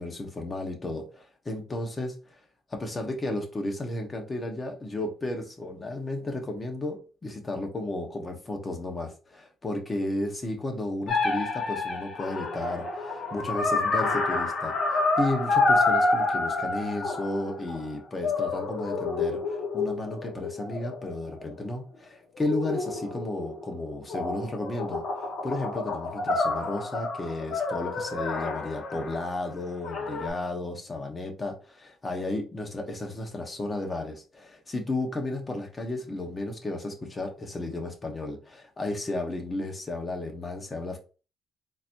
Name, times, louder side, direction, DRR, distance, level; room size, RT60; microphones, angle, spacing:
voice 1, 0.0-2.1 2.7-41.0, left 2 dB, 25° left, 1.1 m, -33 dB
sound 1, 11.1-17.8 18.2-21.5 22.4-23.7 24.1-29.2 29.8-30.3, left 3 dB, 70° left, 1.4 m, -28 dB
4.0 x 2.9 x 2.7 m
cardioid pair, 90°, 0 cm